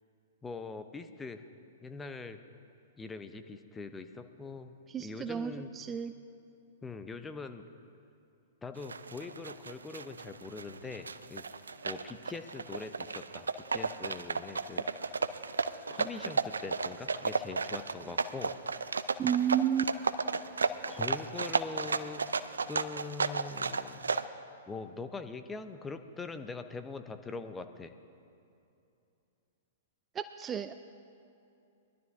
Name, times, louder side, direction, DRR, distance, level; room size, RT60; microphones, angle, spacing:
voice 1, 0.4-1.5 1.8-2.4 3.0-4.7 5.0-5.7 6.8-7.7 8.6-11.5 11.8-15.2 15.9-18.5 20.6-22.3 22.7-24.1 24.7-27.9, left 4 dB, 15° left, 8 dB, 0.7 m, -42 dB
voice 2, 4.9-6.1 19.2-19.9 30.2-30.7, right 9 dB, 20° right, 11 dB, 0.4 m, -31 dB
sound 1, 8.8-24.2, right 4 dB, 80° right, 0.4 m, -33 dB
20.5 x 12.0 x 3.6 m, 2.7 s
figure-of-eight pair, 110°, 0 cm